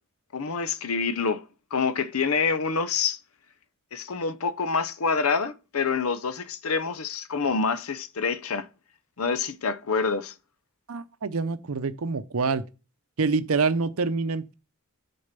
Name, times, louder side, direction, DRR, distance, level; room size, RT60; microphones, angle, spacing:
voice 1, 0.3-1.4 1.7-3.2 3.9-8.7 9.2-10.3, left 5 dB, 75° left, 0.7 m, -27 dB
voice 2, 10.9-12.6 13.2-14.5, right 4 dB, 75° right, 0.6 m, -26 dB
6.7 x 4.3 x 6.6 m
head